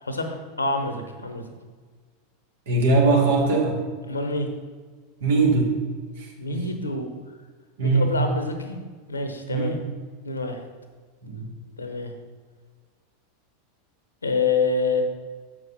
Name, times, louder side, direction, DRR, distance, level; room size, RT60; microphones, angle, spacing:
voice 1, 0.0-1.4 4.1-4.5 6.4-7.1 7.8-8.8 9.1-9.8 10.2-10.6 11.8-12.1 14.2-15.0, left 3 dB, 80° left, 6 dB, 1.0 m, -27 dB
voice 2, 2.7-3.8 5.2-5.7 6.2-6.6 7.8-8.2 9.5-9.7 11.2-11.5, right 3 dB, 60° right, 0 dB, 2.0 m, -21 dB
7.6 x 6.3 x 5.4 m, 1.5 s
figure-of-eight pair, 85°, 0 cm